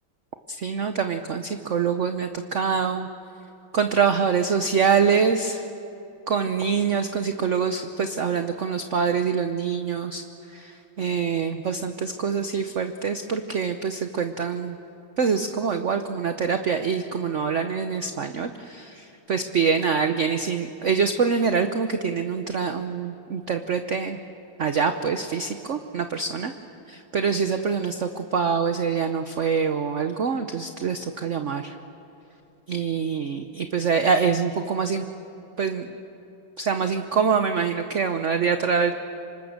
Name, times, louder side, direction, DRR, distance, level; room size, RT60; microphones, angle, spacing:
voice 1, 0.6-3.1 3.7-5.6 6.3-10.2 10.6-10.7 11.0-14.7 15.2-24.2 24.6-26.5 27.1-31.7 32.7-35.0 35.6-35.9 36.6-38.9, right 6 dB, 55° right, 7 dB, 0.8 m, -25 dB
27.0 x 25.0 x 6.6 m, 2.9 s
omnidirectional pair, 2.3 m